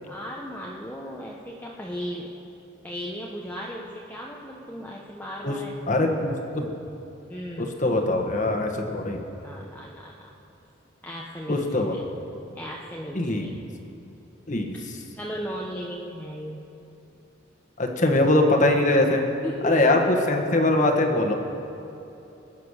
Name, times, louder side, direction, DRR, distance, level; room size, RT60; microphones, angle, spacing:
voice 1, 0.1-2.4 2.8-5.8 7.3-7.8 9.4-10.3 11.0-12.0 12.6-13.5 14.7-14.9 15.2-16.6 19.4-20.2, equal, 10° left, -3 dB, 0.9 m, -36 dB
voice 2, 5.9-6.7 7.6-9.2 11.5-12.1 13.1-13.5 14.5-14.7 17.8-19.2 19.6-21.3, left 2 dB, 40° left, 3 dB, 1.4 m, -22 dB
21.0 x 9.1 x 6.5 m, 2.9 s
head